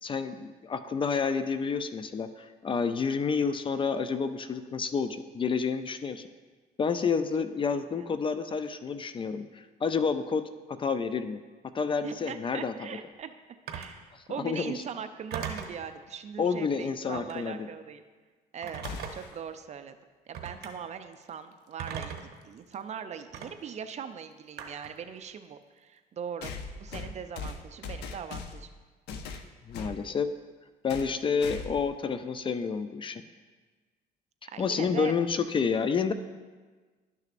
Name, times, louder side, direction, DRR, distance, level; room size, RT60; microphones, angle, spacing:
voice 1, 0.0-6.3 6.8-11.4 11.7-12.7 14.4-14.8 16.4-17.7 29.7-30.3 30.8-33.2 34.6-36.1, left 5 dB, 30° left, 10 dB, 0.4 m, -29 dB
voice 2, 7.7-8.1 12.0-13.4 13.7-18.0 18.5-18.8 19.1-19.9 20.3-22.2 22.4-26.5 26.8-28.7 34.5-35.1, right 7 dB, 45° right, 9 dB, 0.5 m, -40 dB
Telephone, 13.7-14.0 15.3-15.8 17.1-17.4 18.6-19.4 20.3-20.7 21.8-22.4 23.3-23.5 24.6-25.0, right 7 dB, 70° right, 0.8 m, -38 dB
sound 1, 18.8-19.4 21.5-21.6 22.7-22.8 26.4-28.7 29.1-30.0 30.9-31.1 31.4-31.9, left 4 dB, 80° left, 0.6 m, -39 dB
11.5 x 6.3 x 2.5 m, 1.4 s
cardioid pair, 110°, 17 cm